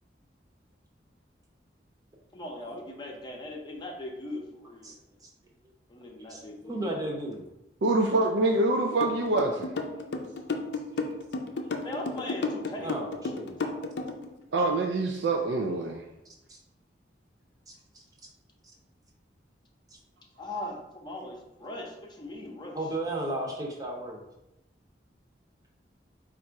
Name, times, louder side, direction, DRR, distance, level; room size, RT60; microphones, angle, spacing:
voice 1, 2.3-5.2 5.9-6.9 11.8-12.9 13.6-13.9 20.4-22.8, left 1 dB, 25° left, 0 dB, 0.6 m, -40 dB
voice 2, 6.3-7.4 12.8-13.6 16.3-16.6 17.7-18.0 22.7-24.2, right 1 dB, 20° right, -1 dB, 0.8 m, -35 dB
voice 3, 7.8-9.7 14.5-16.0, right 2 dB, 80° right, 2 dB, 0.4 m, -25 dB
sound 1, 9.0-14.3, left 3 dB, 70° left, 0.5 m, -32 dB
4.1 x 2.5 x 4.5 m, 0.92 s
head